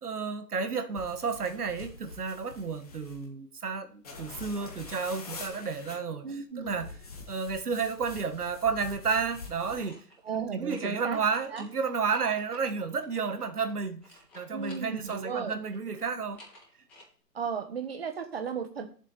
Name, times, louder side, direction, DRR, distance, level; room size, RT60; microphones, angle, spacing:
voice 1, 0.0-6.3 6.6-6.9 7.3-10.0 10.5-16.4, right 5 dB, 65° right, 1.6 m, -31 dB
sound 1, 0.9-3.3 4.0-6.0 6.7-9.9, left 4 dB, 25° left, 1.3 m, -45 dB
sound 2, 4.0-4.9 5.3-6.6 8.8-10.4 10.7-10.9 11.3-15.3 15.6-17.0, left 1 dB, 5° left, 1.3 m, -54 dB
voice 2, 6.2-6.7 10.2-11.2 11.5-11.7 14.5-15.6 17.3-18.9, right 6 dB, 35° right, 1.5 m, -35 dB
13.5 x 7.3 x 4.2 m
hypercardioid pair, 170°, 49 cm